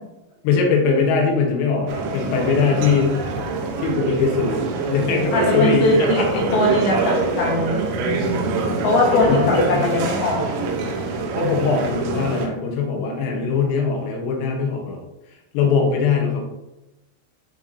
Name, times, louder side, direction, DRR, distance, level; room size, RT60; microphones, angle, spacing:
voice 1, 0.4-3.2 3.8-4.6 4.9-6.4 8.4-8.8 9.1-9.9 11.4-15.0 15.5-16.4, left 5 dB, 85° left, 0 dB, 3.9 m, -21 dB
sound 1, 1.9-12.5, right 3 dB, 85° right, 3.6 m, -25 dB
voice 2, 5.3-7.9 8.8-10.5, left 2 dB, 65° left, -2 dB, 2.7 m, -20 dB
12.0 x 4.5 x 2.8 m, 0.97 s
omnidirectional pair, 5.8 m